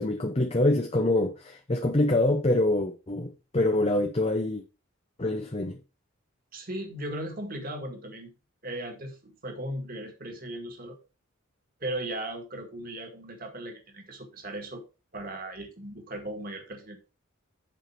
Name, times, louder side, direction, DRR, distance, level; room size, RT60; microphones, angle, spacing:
voice 1, 0.0-4.6 5.2-5.8, left 1 dB, 30° left, 0.7 m, -25 dB
voice 2, 6.5-8.3 8.6-11.0 11.8-14.8 15.1-17.0, right 1 dB, 40° right, 1.9 m, -37 dB
7.7 x 4.9 x 4.5 m
head